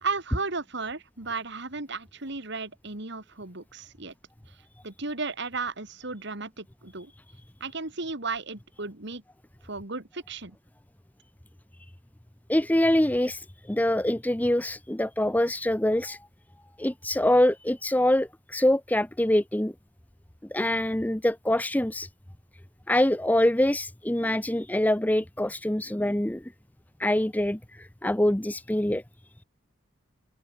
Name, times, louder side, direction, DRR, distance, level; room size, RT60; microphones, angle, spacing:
voice 1, 0.0-4.1 4.5-4.6 4.8-7.1 7.6-9.2 9.6-10.6, right 4 dB, 55° right, 2.5 m, -34 dB
voice 2, 12.5-16.3 16.8-19.7 20.5-22.1 22.9-26.4 27.0-29.0, left 1 dB, 10° left, 0.7 m, -25 dB
open air
head